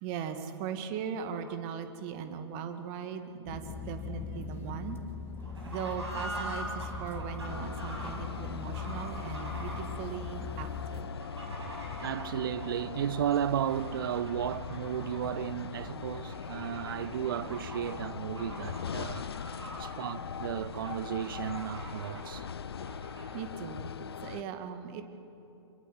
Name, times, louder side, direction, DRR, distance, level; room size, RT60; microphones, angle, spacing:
voice 1, 0.0-5.0 5.6-11.1 23.3-23.9 24.2-25.0, right 7 dB, 35° right, 2.1 m, -39 dB
sound 1, 3.5-11.0, left 5 dB, 15° left, 1.9 m, -41 dB
Fowl / Bird, 5.4-23.4, right 1 dB, 80° right, 7.6 m, -44 dB
sound 2, 7.5-24.4, left 8 dB, 65° left, 0.6 m, -41 dB
voice 2, 12.0-19.3 19.8-22.5, right 10 dB, 55° right, 0.5 m, -34 dB
27.5 x 22.5 x 7.6 m
figure-of-eight pair, 115°, 14 cm